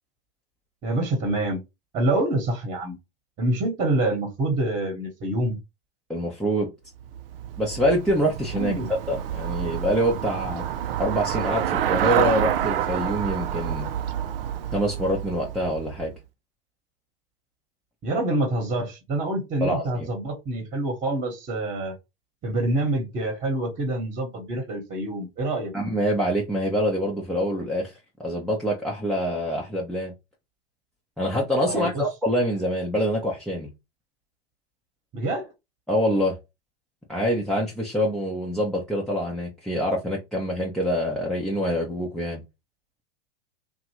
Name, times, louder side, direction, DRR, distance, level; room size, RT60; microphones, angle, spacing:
voice 1, 0.8-1.6 1.9-3.0 3.4-5.6 8.5-8.9 18.0-21.9 22.4-25.7 31.7-32.1 35.1-35.5, right 2 dB, 25° right, 1.2 m, -26 dB
voice 2, 6.1-6.7 7.6-8.7 9.1-10.6 11.0-13.9 14.7-16.1 19.6-20.1 25.7-27.9 28.2-30.1 31.2-33.7 35.9-36.4 37.1-42.4, equal, ahead, 0.7 m, -25 dB
Traffic noise roadway noise / Bicycle, 7.0-16.2, right 10 dB, 65° right, 0.6 m, -28 dB
2.9 x 2.5 x 2.9 m
hypercardioid pair, 105°, 30 cm